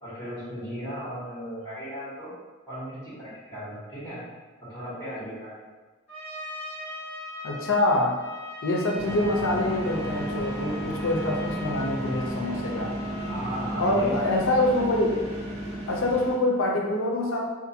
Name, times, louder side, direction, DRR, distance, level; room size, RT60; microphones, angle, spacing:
voice 1, 0.0-2.3 2.7-4.2 4.7-5.7 13.3-14.3, equal, 15° left, -10 dB, 1.2 m, -36 dB
Trumpet, 6.1-13.4, left 2 dB, 15° right, 1.4 m, -40 dB
voice 2, 7.4-8.2 8.6-12.9 13.8-15.3 15.9-17.4, left 2 dB, 70° left, 0 dB, 0.5 m, -25 dB
sound 1, 9.0-16.3, right 1 dB, 30° right, 0.6 m, -33 dB
2.5 x 2.4 x 2.7 m, 1.3 s
head